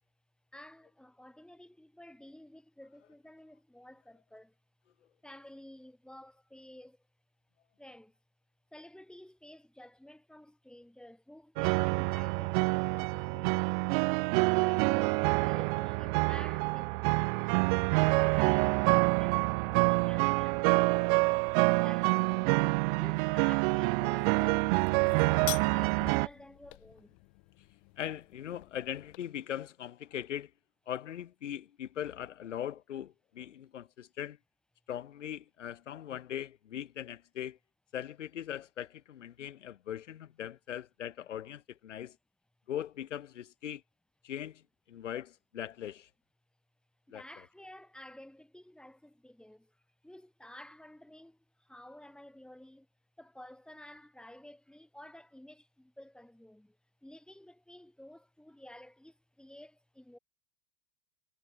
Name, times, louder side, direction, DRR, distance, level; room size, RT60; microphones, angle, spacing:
voice 1, 0.5-4.5 5.2-7.0 7.8-8.1 8.7-14.1 14.5-17.5 18.0-21.2 21.5-24.7 25.0-27.2 47.1-49.8 50.0-52.9 53.2-56.8 57.0-60.2, left 1 dB, ahead, 5.5 m, -52 dB
sound 1, 11.6-26.3, right 30 dB, 45° right, 0.7 m, -27 dB
sound 2, 24.2-29.2, left 40 dB or more, 50° left, 6.8 m, -45 dB
voice 2, 28.0-30.5 30.9-34.4 34.9-37.6 37.9-42.2 42.7-43.8 44.2-44.6 44.9-46.1 47.1-47.2, left 10 dB, 80° left, 2.3 m, -40 dB
hypercardioid pair, 110°, 36 cm